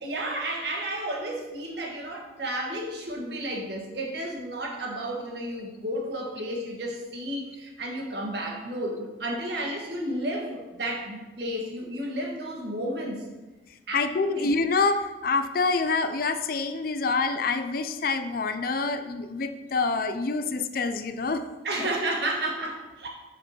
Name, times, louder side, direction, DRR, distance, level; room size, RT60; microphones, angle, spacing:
voice 1, 0.0-13.2 13.9-14.5 21.6-23.1, right 1 dB, 55° right, 0 dB, 1.6 m, -32 dB
voice 2, 13.9-21.4, left 4 dB, 50° left, 10 dB, 0.5 m, -26 dB
6.7 x 5.1 x 5.6 m, 1.1 s
head